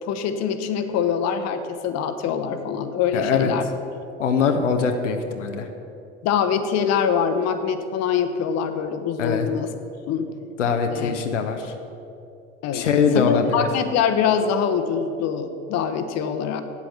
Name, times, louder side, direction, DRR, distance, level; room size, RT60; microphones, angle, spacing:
voice 1, 0.0-3.6 6.2-9.7 10.1-10.4 10.9-11.2 12.6-12.9 13.1-16.6, left 7 dB, 45° left, 8 dB, 1.0 m, -24 dB
voice 2, 3.1-3.5 4.2-5.7 9.2-9.5 10.6-11.7 12.7-13.7, left 5 dB, 85° left, 5 dB, 0.8 m, -22 dB
8.5 x 8.1 x 6.9 m, 2.7 s
hypercardioid pair, 75°, 36 cm